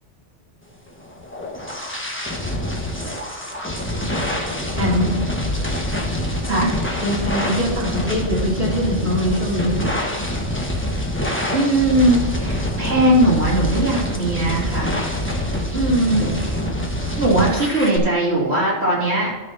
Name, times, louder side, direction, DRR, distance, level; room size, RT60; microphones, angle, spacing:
sound 1, 1.0-18.0, left 1 dB, 10° left, 1.3 m, -25 dB
voice 1, 4.8-5.1 7.0-9.8, equal, 40° right, -6 dB, 3.1 m, -22 dB
voice 2, 11.5-15.3 15.7-16.6 17.2-19.3, right 1 dB, 65° right, -5 dB, 3.1 m, -19 dB
13.0 x 6.2 x 4.1 m, 1.2 s
omnidirectional pair, 1.2 m